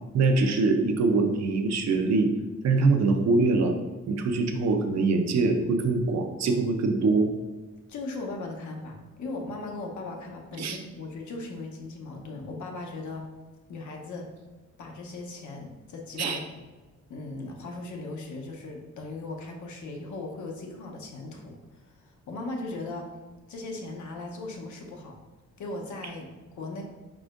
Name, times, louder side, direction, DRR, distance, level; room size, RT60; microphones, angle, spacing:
voice 1, 0.1-2.3 2.6-3.7 4.1-7.3 10.6-10.8 16.2-16.4, right 3 dB, 65° right, 5 dB, 0.6 m, -23 dB
voice 2, 7.9-13.3 13.7-14.3 14.8-16.4 17.1-23.1 23.5-25.2 25.6-26.3 26.5-26.8, left 2 dB, 85° left, 1 dB, 0.9 m, -38 dB
4.9 x 4.3 x 2.5 m, 1.2 s
wide cardioid pair, 165°, 29 cm